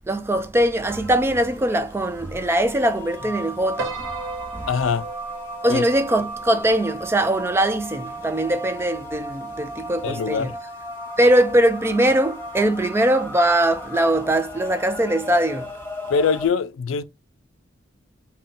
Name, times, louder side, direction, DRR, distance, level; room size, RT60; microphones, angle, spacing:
voice 1, 0.1-4.0 4.5-4.7 5.6-10.5 11.2-15.7, right 1 dB, 10° right, 0.3 m, -21 dB
sound 1, 0.9-16.5, equal, 10° left, 0.9 m, -36 dB
Piano, 3.8-8.2, right 3 dB, 70° right, 0.7 m, -38 dB
voice 2, 4.7-5.1 5.7-5.8 10.0-10.5 16.1-17.0, left 5 dB, 85° left, 0.4 m, -23 dB
3.6 x 2.2 x 3.7 m
head